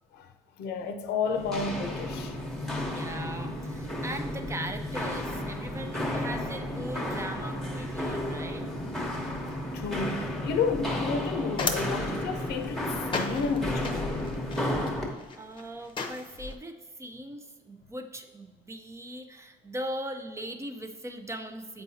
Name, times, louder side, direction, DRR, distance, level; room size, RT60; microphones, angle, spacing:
voice 1, 0.6-2.4 9.7-14.3 15.6-15.7, left 5 dB, 75° left, 0.6 m, -31 dB
Walk footsteps, 1.3-15.1, left 1 dB, ahead, 1.0 m, -33 dB
voice 2, 2.9-8.6 14.9-21.8, right 1 dB, 15° right, 0.5 m, -40 dB
sound 1, 11.2-16.6, left 3 dB, 30° left, 0.7 m, -36 dB
7.6 x 4.6 x 2.8 m
cardioid pair, 110°, 17 cm